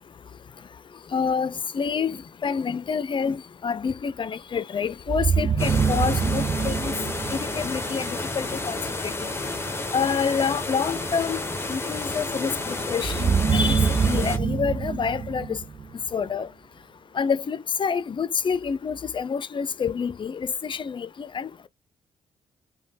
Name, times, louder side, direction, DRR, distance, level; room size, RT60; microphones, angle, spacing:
voice 1, 1.1-6.9 7.3-8.8 9.0-9.1 9.9-11.4 11.7-15.6 16.1-16.5 17.2-21.7, left 6 dB, 45° left, 0.5 m, -27 dB
sound 1, 5.1-8.1 13.0-16.2, right 6 dB, 40° right, 0.5 m, -25 dB
sound 2, 5.6-14.4, left 2 dB, 20° left, 0.9 m, -31 dB
3.1 x 2.3 x 2.8 m
supercardioid pair, 50°, 12 cm